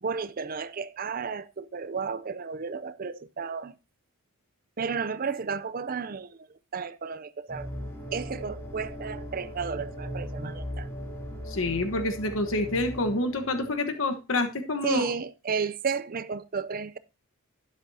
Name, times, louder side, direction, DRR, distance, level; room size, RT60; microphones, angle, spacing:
voice 1, 0.0-3.7 4.8-6.5 6.7-7.7 8.1-10.9 14.8-17.0, right 5 dB, 40° right, 0.5 m, -33 dB
sound 1, 7.5-13.7, equal, 10° left, 3.0 m, -38 dB
voice 2, 11.5-15.1, left 2 dB, 60° left, 1.2 m, -27 dB
12.0 x 10.0 x 2.8 m
head